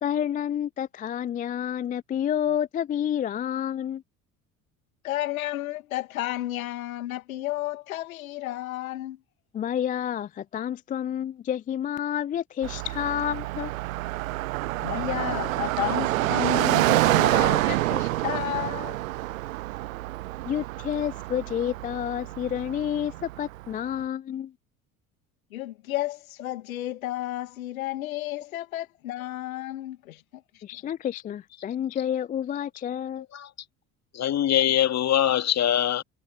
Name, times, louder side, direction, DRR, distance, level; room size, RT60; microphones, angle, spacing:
voice 1, 0.0-4.0 9.5-13.7 20.5-24.5 30.6-33.3, left 10 dB, 20° left, 0.4 m, -29 dB
voice 2, 5.0-9.2 14.8-19.0 25.5-30.6, left 15 dB, 70° left, 2.3 m, -32 dB
Car passing by, 12.6-23.7, right 18 dB, 65° right, 0.9 m, -27 dB
voice 3, 34.1-36.0, left 11 dB, 35° left, 2.5 m, -23 dB
figure-of-eight pair, 60°, 43 cm